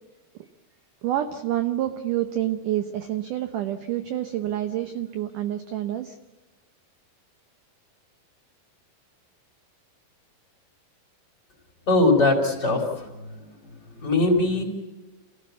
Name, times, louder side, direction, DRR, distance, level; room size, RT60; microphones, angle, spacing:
voice 1, 1.0-6.2, right 12 dB, 70° right, 8 dB, 2.0 m, -28 dB
voice 2, 11.9-13.5 13.9-14.6, left 2 dB, 25° left, 1 dB, 4.2 m, -21 dB
29.0 x 16.5 x 8.4 m, 1.2 s
omnidirectional pair, 4.7 m